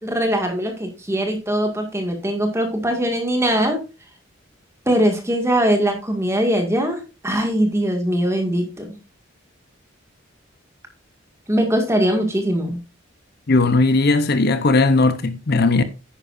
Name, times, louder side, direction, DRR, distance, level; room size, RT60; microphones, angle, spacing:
voice 1, 0.0-3.8 4.9-9.0 11.5-12.8, equal, 15° right, 1.9 m, -21 dB
voice 2, 13.5-15.8, left 3 dB, 55° left, 0.7 m, -17 dB
10.0 x 9.7 x 2.5 m
head